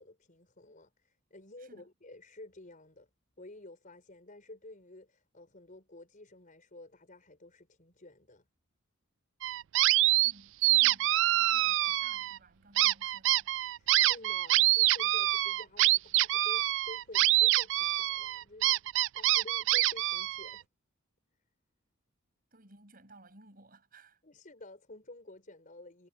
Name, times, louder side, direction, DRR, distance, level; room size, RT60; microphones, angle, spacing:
voice 1, 0.0-3.1 3.4-8.5 13.8-20.6 24.2-26.1, left 2 dB, 40° left, 4.4 m, -51 dB
sound 1, 9.4-10.3 10.6-12.4 12.8-20.6, right 16 dB, 65° right, 0.3 m, -26 dB
voice 2, 10.2-13.5 22.5-24.2, right 2 dB, 45° right, 6.7 m, -58 dB
head